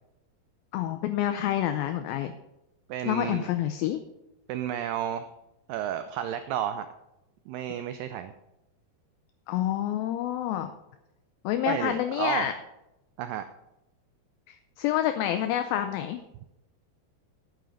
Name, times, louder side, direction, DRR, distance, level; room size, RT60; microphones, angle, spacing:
voice 1, 0.7-2.3 3.1-4.0 9.5-10.7 11.4-12.5 14.5-16.2, left 11 dB, 80° left, 8 dB, 2.3 m, -28 dB
voice 2, 2.9-3.5 4.5-5.3 5.7-6.9 7.5-8.3 11.7-12.5 13.2-13.4, right 10 dB, 85° right, 10 dB, 1.9 m, -31 dB
9.5 x 9.1 x 5.1 m, 0.90 s
omnidirectional pair, 4.5 m